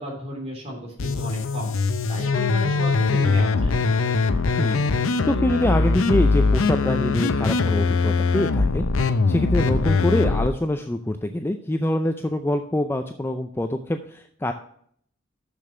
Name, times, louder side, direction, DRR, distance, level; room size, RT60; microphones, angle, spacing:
voice 1, 0.0-1.7 2.1-3.8, right 1 dB, 30° right, -1 dB, 3.2 m, -34 dB
sound 1, 1.0-10.5, left 4 dB, 80° left, 0.6 m, -21 dB
voice 2, 5.2-14.5, left 1 dB, 10° left, 6 dB, 0.4 m, -25 dB
6.9 x 6.8 x 6.5 m, 0.63 s
head